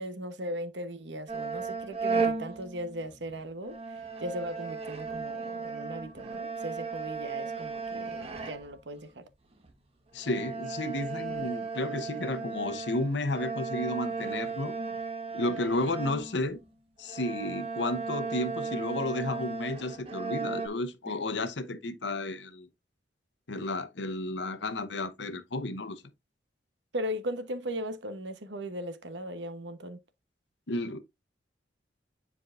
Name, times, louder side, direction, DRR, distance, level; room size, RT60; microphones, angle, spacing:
voice 1, 0.0-9.2 21.1-21.2 26.9-30.0, equal, 75° right, 1.0 m, -38 dB
sound 1, 1.3-3.3 3.6-8.9 9.6-9.7 10.2-16.7 17.0-20.7, right 4 dB, 35° right, 1.3 m, -35 dB
voice 2, 10.1-14.7 15.3-16.6 17.0-22.7 23.5-26.0 30.7-31.0, left 2 dB, 80° left, 0.9 m, -32 dB
9.7 x 4.7 x 2.5 m
head